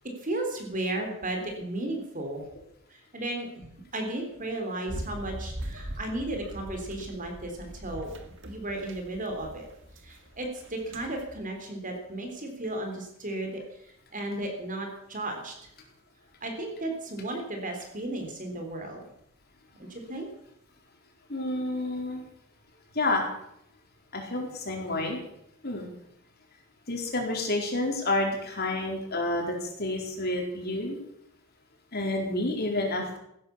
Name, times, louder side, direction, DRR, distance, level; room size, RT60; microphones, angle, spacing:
voice 1, 0.2-2.4 2.9-8.1 8.5-9.7 10.0-13.6 14.1-15.7 16.4-19.0 19.9-20.3, right 1 dB, 40° right, 3 dB, 3.6 m, -34 dB
sound 1, 4.9-11.4, right 1 dB, 60° right, 2.0 m, -41 dB
voice 2, 21.3-22.2 22.9-23.2 24.1-25.2 25.6-25.9 26.9-31.0 31.9-33.2, left 2 dB, 50° left, 1 dB, 4.2 m, -29 dB
16.0 x 11.5 x 7.1 m, 0.77 s
head